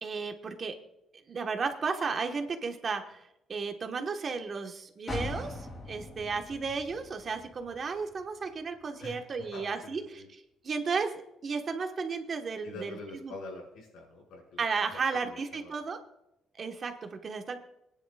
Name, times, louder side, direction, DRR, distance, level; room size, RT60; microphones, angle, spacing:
voice 1, 0.0-0.7 1.3-3.2 3.5-5.6 5.9-10.2 10.6-11.1 11.4-13.0 13.2-13.3 14.6-16.0 16.6-17.6, right 5 dB, 45° right, 5 dB, 1.3 m, -33 dB
sound 1, 5.1-8.8 9.2-9.3, left 2 dB, 35° left, 3.8 m, -41 dB
voice 2, 9.0-10.3 12.6-14.6 15.1-15.7, left 2 dB, 85° left, -2 dB, 5.2 m, -45 dB
21.0 x 10.0 x 2.4 m, 0.85 s
cardioid pair, 90°, 0 cm